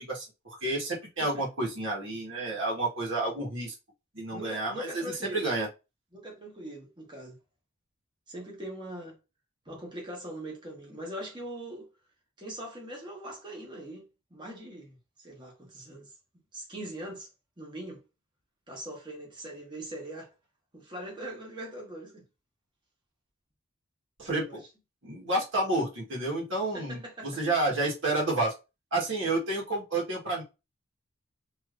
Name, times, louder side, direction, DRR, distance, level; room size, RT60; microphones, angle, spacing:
voice 1, 0.0-3.7 4.1-4.9 5.3-5.7 24.2-24.6 25.0-28.5 28.9-30.4, right 2 dB, 70° right, 1.4 m, -30 dB
voice 2, 4.3-5.5 6.1-7.4 8.3-9.2 9.6-11.9 12.4-16.1 16.5-17.3 17.6-18.0 18.7-20.3 20.7-22.2 24.4-24.6 26.7-27.4 29.2-29.3, right 1 dB, 20° right, 1.1 m, -41 dB
3.2 x 2.7 x 2.4 m
head